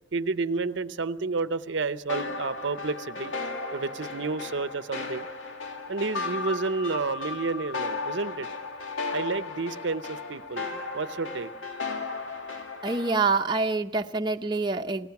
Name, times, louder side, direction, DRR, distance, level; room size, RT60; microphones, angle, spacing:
voice 1, 0.1-3.3 3.7-5.3 5.9-8.5 9.1-10.7 10.9-11.5, right 3 dB, 65° right, 13 dB, 0.7 m, -30 dB
sound 1, 2.1-13.4, left 3 dB, 70° left, 1.9 m, -35 dB
voice 2, 12.8-15.1, right 3 dB, 20° right, 4 dB, 0.7 m, -26 dB
28.5 x 17.5 x 5.9 m, 0.81 s
head